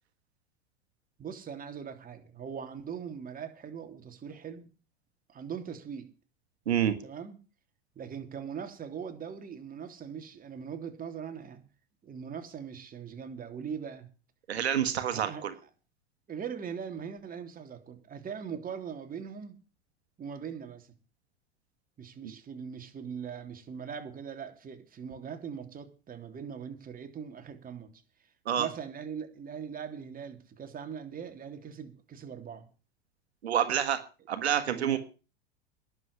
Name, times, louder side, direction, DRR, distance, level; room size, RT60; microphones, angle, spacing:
voice 1, 1.2-4.7 5.3-6.1 7.0-7.4 7.9-11.7 12.0-14.1 15.1-15.6 16.3-19.6 20.2-20.9 22.0-27.9 28.2-28.3 28.6-32.7 34.7-35.0, right 7 dB, 25° right, 3.3 m, -41 dB
voice 2, 14.5-15.5 28.5-28.7 33.4-34.0 34.3-35.0, right 9 dB, 85° right, 1.7 m, -27 dB
11.0 x 7.6 x 9.8 m
hypercardioid pair, 95°, 31 cm